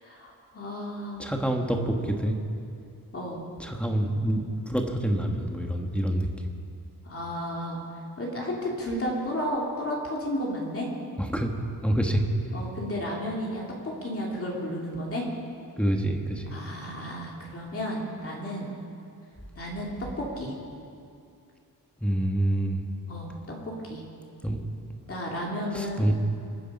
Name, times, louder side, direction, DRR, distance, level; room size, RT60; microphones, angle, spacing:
voice 1, 0.0-1.3 3.1-3.4 7.0-7.8 8.2-10.9 12.5-15.2 16.5-18.7 19.6-20.5 23.1-24.0 25.1-26.1, equal, 35° left, -3 dB, 2.8 m, -33 dB
voice 2, 1.2-2.4 3.6-6.3 11.2-11.5 11.8-12.3 15.8-16.5 22.0-22.8 24.4-24.6 25.7-26.1, right 1 dB, 5° left, 2 dB, 1.4 m, -26 dB
26.5 x 10.0 x 5.4 m, 2.5 s
wide cardioid pair, 150°, 40 cm